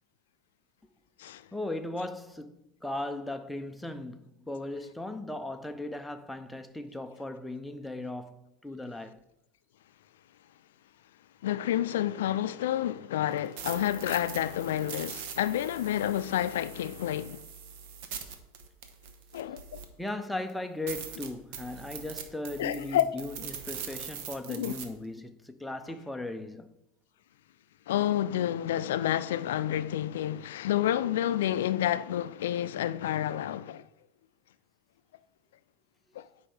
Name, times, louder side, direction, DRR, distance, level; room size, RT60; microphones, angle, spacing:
voice 1, 1.5-9.2 20.0-26.7, left 2 dB, 5° left, 0.5 m, -37 dB
voice 2, 11.4-17.4 19.3-19.6 22.6-23.2 24.5-24.7 27.9-33.9 36.1-36.3, left 11 dB, 85° left, 0.3 m, -29 dB
sound 1, 13.3-20.1 20.5-20.6 20.9-24.8, right 7 dB, 65° right, 1.0 m, -42 dB
9.7 x 5.4 x 3.3 m
supercardioid pair, 125°, 0 cm